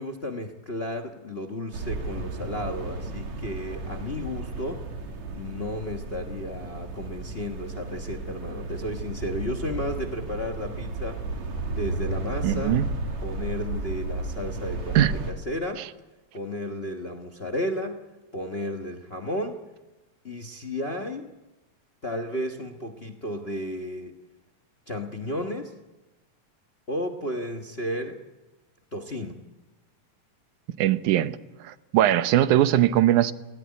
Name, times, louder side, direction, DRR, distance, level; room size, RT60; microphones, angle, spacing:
voice 1, 0.0-4.8 5.3-11.2 11.7-12.8 13.2-15.8 16.3-18.0 18.3-19.6 20.2-21.3 22.0-24.1 24.9-25.7 26.9-28.2 28.9-29.4, left 1 dB, 65° left, 0.6 m, -33 dB
sound 1, 1.7-15.3, right 3 dB, 65° right, 3.5 m, -33 dB
voice 2, 12.4-12.9 15.0-15.1 30.8-33.3, right 12 dB, 85° right, 2.3 m, -21 dB
19.0 x 18.0 x 9.6 m
omnidirectional pair, 3.4 m